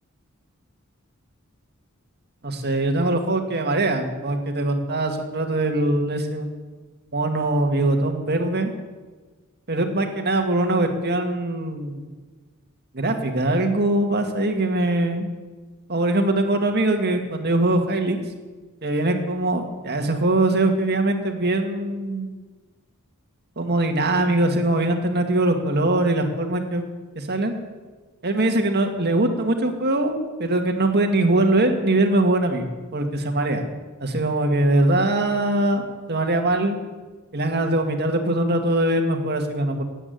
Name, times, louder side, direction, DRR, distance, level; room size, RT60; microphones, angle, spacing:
voice 1, 2.4-6.5 7.1-8.7 9.7-12.0 12.9-15.3 15.9-18.2 18.8-22.3 23.6-26.8 27.2-27.6 28.2-33.6 34.1-36.8 37.3-39.8, right 2 dB, 50° right, 4 dB, 2.1 m, -22 dB
17.5 x 8.9 x 9.5 m, 1.3 s
head